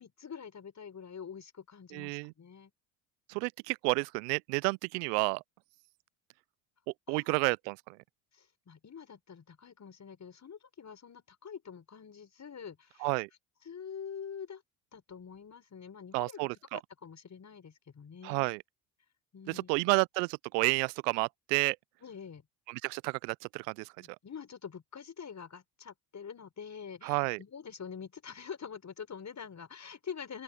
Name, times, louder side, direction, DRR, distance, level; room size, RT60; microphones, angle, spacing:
voice 1, 0.0-2.7 7.1-7.3 8.3-13.1 13.6-14.6 14.9-18.6 19.3-19.9 22.0-22.4 24.0-30.4, left 7 dB, 35° left, 6.4 m, -46 dB
voice 2, 1.9-2.3 3.3-5.4 7.1-7.8 13.0-13.3 16.1-16.8 18.2-18.6 19.5-21.8 22.7-23.9 27.0-27.4, right 30 dB, 70° right, 0.6 m, -30 dB
open air
hypercardioid pair, 70°, 50 cm